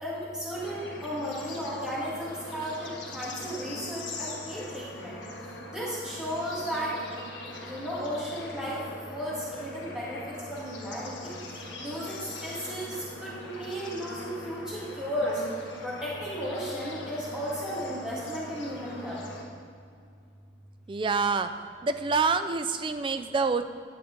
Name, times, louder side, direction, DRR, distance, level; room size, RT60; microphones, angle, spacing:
voice 1, 0.0-5.2 5.7-7.3 7.5-8.8 9.1-10.2 10.5-11.3 11.8-15.4 15.8-19.2, equal, 5° right, -8 dB, 1.7 m, -34 dB
Bird / Insect / Frog, 0.5-19.4, left 2 dB, 85° left, 1.3 m, -42 dB
voice 2, 20.9-21.5 21.8-23.6, right 4 dB, 25° right, 10 dB, 0.3 m, -26 dB
10.5 x 7.2 x 3.7 m, 2.3 s
head